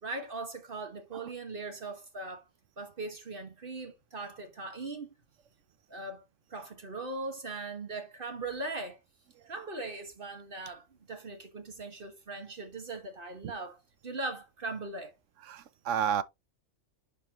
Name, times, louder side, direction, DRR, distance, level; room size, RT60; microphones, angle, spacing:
voice 1, 0.0-2.5 2.8-5.1 5.9-6.2 6.5-9.0 9.4-15.1, right 3 dB, 50° right, 1.6 m, -40 dB
voice 2, 15.5-16.2, right 8 dB, 90° right, 1.1 m, -31 dB
11.0 x 4.2 x 3.0 m
omnidirectional pair, 1.2 m